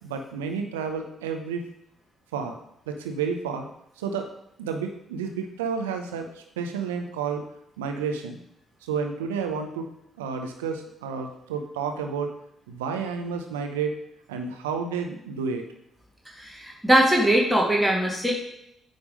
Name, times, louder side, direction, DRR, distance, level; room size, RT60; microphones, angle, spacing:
voice 1, 0.0-1.7 2.3-2.6 2.9-3.7 4.0-4.3 4.6-7.4 7.8-8.4 8.8-9.9 10.2-12.3 12.7-13.9 14.3-15.6, right 6 dB, 80° right, 4 dB, 0.8 m, -30 dB
voice 2, 16.3-18.3, right 1 dB, 5° right, -2 dB, 2.1 m, -21 dB
8.9 x 3.5 x 5.4 m, 0.77 s
figure-of-eight pair, 45°, 0 cm